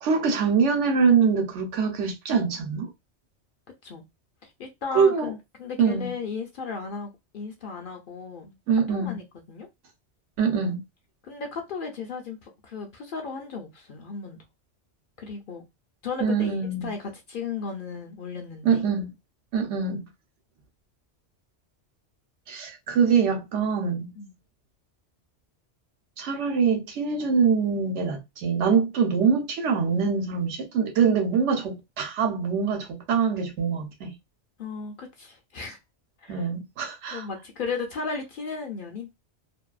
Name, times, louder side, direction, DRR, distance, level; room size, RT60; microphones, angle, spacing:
voice 1, 0.0-2.9 4.9-5.3 5.8-6.1 8.7-9.2 10.4-10.8 16.2-16.9 18.6-19.1 19.5-20.1 22.5-24.1 26.2-34.1 36.3-37.3, right 6 dB, 80° right, 1.0 m, -24 dB
voice 2, 4.6-8.5 8.9-9.7 11.2-14.4 15.2-15.6 16.0-18.8 24.2-24.3 34.6-35.8 36.2-36.4 37.1-39.1, left 5 dB, 60° left, 0.6 m, -35 dB
2.6 x 2.2 x 2.3 m
omnidirectional pair, 1.2 m